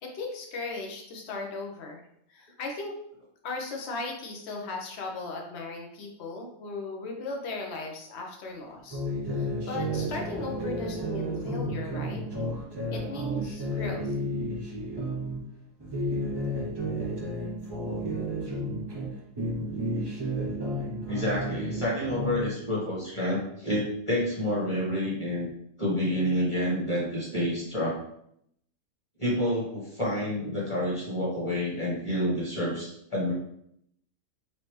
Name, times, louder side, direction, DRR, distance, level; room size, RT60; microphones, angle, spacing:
voice 1, 0.0-2.0 2.3-3.0 3.4-9.0 9.3-12.2 12.9-14.1, left 3 dB, 55° left, 1 dB, 1.0 m, -37 dB
sound 1, 8.9-15.4 15.8-19.1 19.4-22.5, equal, 25° right, 0.6 m, -32 dB
voice 2, 21.1-25.5 25.8-28.0 29.2-33.3, equal, 20° left, -6 dB, 1.4 m, -28 dB
4.4 x 2.8 x 3.2 m, 0.73 s
omnidirectional pair, 1.5 m